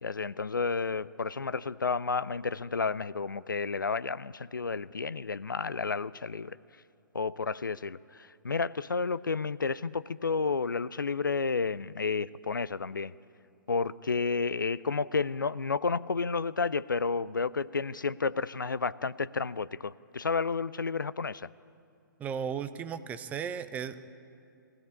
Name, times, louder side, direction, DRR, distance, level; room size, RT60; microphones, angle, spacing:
voice 1, 0.0-6.6 7.1-13.1 13.7-21.5, left 4 dB, 75° left, 17 dB, 0.5 m, -31 dB
voice 2, 22.2-24.0, right 7 dB, 15° right, 12 dB, 0.7 m, -35 dB
22.0 x 16.0 x 9.9 m, 2.5 s
figure-of-eight pair, 120°, 11 cm